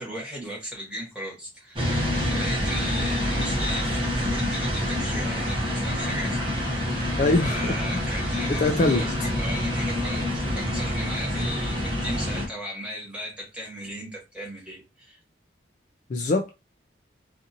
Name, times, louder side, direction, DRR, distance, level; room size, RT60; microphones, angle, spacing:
voice 1, 0.0-6.4 7.0-15.2, equal, 5° right, 1.3 m, -36 dB
sound 1, 1.8-12.5, left 1 dB, 25° right, 0.8 m, -27 dB
voice 2, 7.2-8.0 8.5-9.1 16.1-16.5, left 2 dB, 40° left, 0.3 m, -23 dB
2.6 x 2.5 x 2.7 m
head